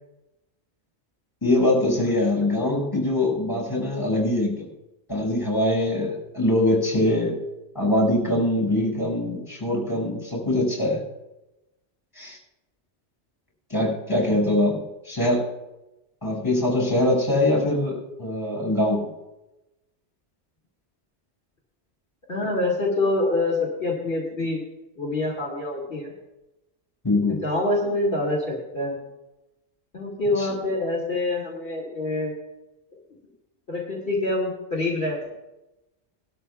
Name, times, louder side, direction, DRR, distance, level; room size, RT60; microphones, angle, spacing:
voice 1, 1.4-4.7 5.1-7.4 7.7-11.0 12.2-12.4 13.7-15.5 16.2-19.0 27.0-27.4 30.4-30.5, left 1 dB, 20° left, -2 dB, 5.5 m, -23 dB
voice 2, 22.3-24.6 25.0-26.1 27.3-29.0 29.9-32.3 33.7-35.2, left 2 dB, 55° left, -4 dB, 2.4 m, -26 dB
20.0 x 13.0 x 2.3 m, 0.96 s
omnidirectional pair, 1.2 m